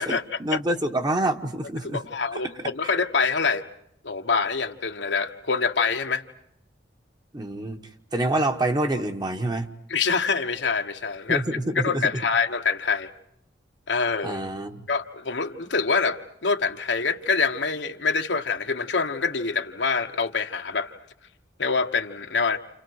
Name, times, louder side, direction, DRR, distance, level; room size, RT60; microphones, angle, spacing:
voice 1, 0.1-2.0 2.3-2.4 2.8-2.9 7.3-7.8 8.1-9.7 11.3-12.0 14.2-14.8, right 1 dB, 25° right, 1.1 m, -27 dB
voice 2, 1.8-3.7 4.0-6.2 9.9-11.4 11.8-13.1 13.9-14.4 14.9-21.0 21.6-22.6, left 4 dB, 75° left, 1.3 m, -25 dB
29.5 x 29.0 x 4.7 m
head